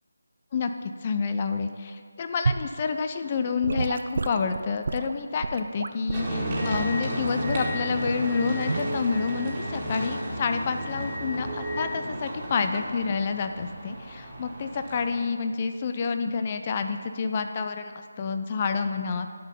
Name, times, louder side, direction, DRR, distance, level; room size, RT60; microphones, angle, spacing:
voice 1, 0.5-19.3, left 5 dB, 30° left, 8 dB, 0.5 m, -28 dB
Gurgling / Sink (filling or washing) / Liquid, 2.4-2.7 3.6-6.3 6.7-7.0 7.5-7.7 8.7-8.9, right 4 dB, 50° right, 0.4 m, -30 dB
sound 1, 6.1-15.3, equal, 20° right, 1.8 m, -32 dB
12.0 x 5.4 x 5.4 m, 2.2 s
figure-of-eight pair, 165°, 0 cm